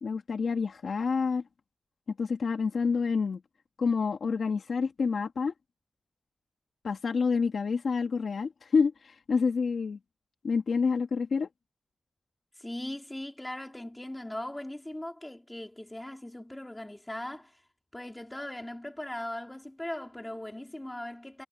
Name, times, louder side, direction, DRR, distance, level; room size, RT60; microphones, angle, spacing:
voice 1, 0.0-1.4 2.2-3.4 3.8-5.5 6.8-10.0 10.4-11.5, left 5 dB, 75° left, 2.0 m, -28 dB
voice 2, 12.6-17.6 17.9-21.4, left 1 dB, 10° left, 3.2 m, -39 dB
wide cardioid pair, 150°, 0 cm